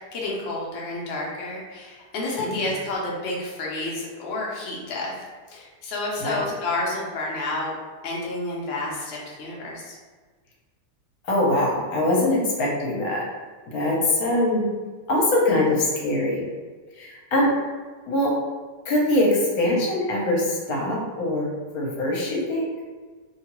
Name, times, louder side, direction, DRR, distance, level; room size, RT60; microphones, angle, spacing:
voice 1, 0.0-7.7 8.0-10.0, left 2 dB, 85° left, -3 dB, 0.5 m, -30 dB
voice 2, 11.2-13.2 13.7-14.7 15.1-16.4 17.0-17.5 18.1-18.3 18.9-22.7, left 1 dB, 65° left, -3 dB, 1.1 m, -23 dB
2.8 x 2.3 x 2.9 m, 1.4 s
omnidirectional pair, 1.9 m